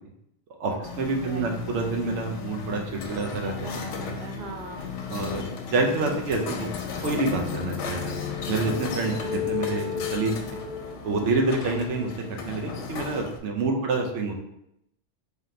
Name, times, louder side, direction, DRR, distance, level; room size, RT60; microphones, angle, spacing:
voice 1, 0.6-3.5 5.1-6.7 7.0-8.2 8.5-10.3 11.0-12.1 12.4-14.4, right 3 dB, 80° right, 1 dB, 1.0 m, -27 dB
sound 1, 0.8-13.4, left 5 dB, 90° left, 0.9 m, -36 dB
voice 2, 1.2-1.5 3.6-5.6 13.6-13.8, right 2 dB, 50° right, 1 dB, 0.6 m, -42 dB
sound 2, 6.9-12.8, left 8 dB, 50° left, 0.7 m, -34 dB
3.5 x 2.8 x 3.8 m, 0.79 s
omnidirectional pair, 1.2 m